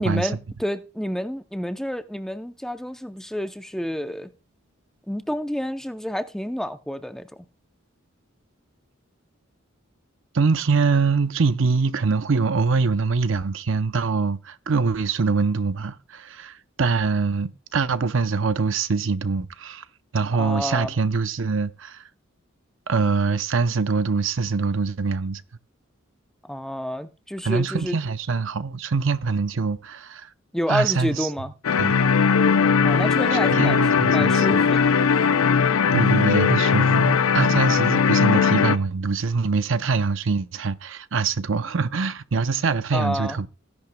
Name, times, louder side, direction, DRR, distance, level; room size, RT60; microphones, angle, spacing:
voice 1, 0.0-4.3 5.1-7.5 20.4-20.9 26.4-28.0 30.5-31.5 32.8-35.0 42.9-43.4, equal, ahead, 0.6 m, -29 dB
voice 2, 10.3-19.8 20.1-22.0 22.9-25.4 27.4-30.3 30.7-31.3 31.8-31.9 33.5-34.6 35.9-43.5, right 4 dB, 65° right, 0.6 m, -24 dB
sound 1, 31.6-38.8, left 6 dB, 90° left, 0.5 m, -19 dB
16.5 x 10.5 x 2.2 m
head